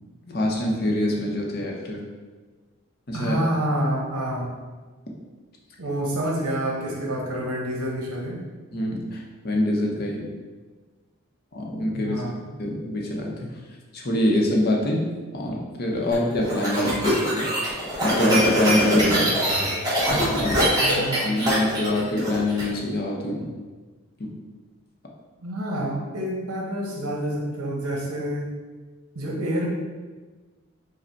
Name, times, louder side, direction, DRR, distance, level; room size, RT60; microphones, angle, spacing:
voice 1, 0.3-2.0 3.1-3.4 8.7-10.3 11.5-12.2 12.6-13.5 13.9-17.5 18.0-19.3 20.3-20.6 20.9-23.5 24.2-24.3, left 1 dB, 45° left, -1 dB, 0.6 m, -25 dB
voice 2, 3.1-4.6 5.8-8.4 11.9-12.4 20.8-21.4 25.4-28.5 29.1-29.7, right 1 dB, 85° right, -1 dB, 0.9 m, -28 dB
sound 1, 16.1-22.6, equal, 20° right, 1.1 m, -23 dB
4.9 x 2.1 x 4.4 m, 1.3 s
head